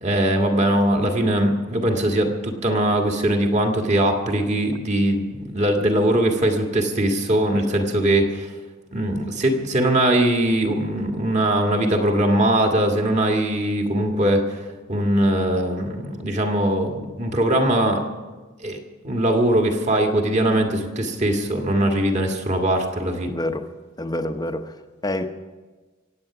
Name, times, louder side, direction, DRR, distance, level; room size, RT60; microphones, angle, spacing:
voice 1, 0.0-8.5 8.9-14.4 14.9-18.0 18.6-18.8 19.0-23.3, right 1 dB, 35° right, 3 dB, 1.8 m, -21 dB
voice 2, 23.2-23.7 24.0-24.7 25.0-25.3, left 1 dB, 20° left, 7 dB, 0.8 m, -27 dB
24.0 x 8.8 x 6.0 m, 1.3 s
head